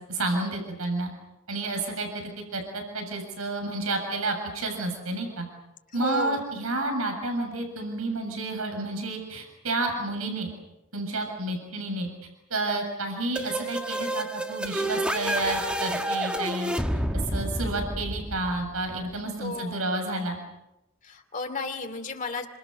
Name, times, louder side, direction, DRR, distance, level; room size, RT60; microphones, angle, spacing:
voice 1, 0.1-1.1 1.5-5.5 5.9-10.5 10.9-12.1 12.5-16.7 17.1-20.4, right 2 dB, 90° right, 4 dB, 7.4 m, -30 dB
voice 2, 5.9-6.4 19.4-19.9 21.0-22.5, left 3 dB, 35° left, 6 dB, 2.8 m, -33 dB
sound 1, 13.4-19.0, right 1 dB, 5° right, 1.5 m, -29 dB
29.5 x 26.5 x 6.7 m, 0.91 s
head